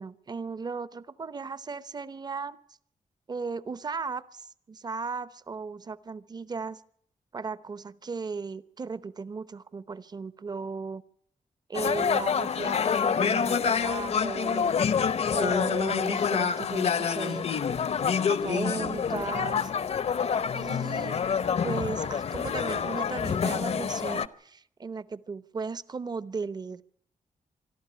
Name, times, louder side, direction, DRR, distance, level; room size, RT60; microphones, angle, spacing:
voice 1, 0.0-2.6 3.3-6.8 7.3-11.0 11.7-14.7 15.3-17.5 18.3-19.7 20.5-21.2 21.6-26.8, right 4 dB, 30° right, 16 dB, 0.8 m, -36 dB
sound 1, 11.7-24.3, left 6 dB, 55° left, 0.8 m, -27 dB
26.0 x 12.5 x 9.7 m, 0.68 s
wide cardioid pair, 150°, 13 cm